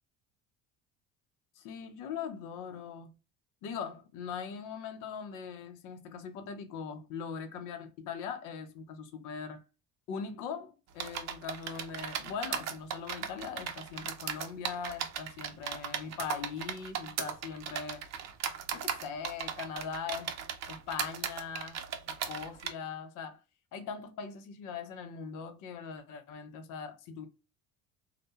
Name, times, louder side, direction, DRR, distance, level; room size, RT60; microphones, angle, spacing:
voice 1, 1.6-3.2 3.6-9.6 10.1-18.0 18.7-20.4 20.7-21.8 22.1-23.4 23.7-27.3, left 6 dB, 60° left, 0.7 m, -41 dB
sound 1, 11.0-22.7, right 8 dB, 50° right, 0.6 m, -37 dB
2.2 x 2.1 x 2.7 m
hypercardioid pair, 70°, 34 cm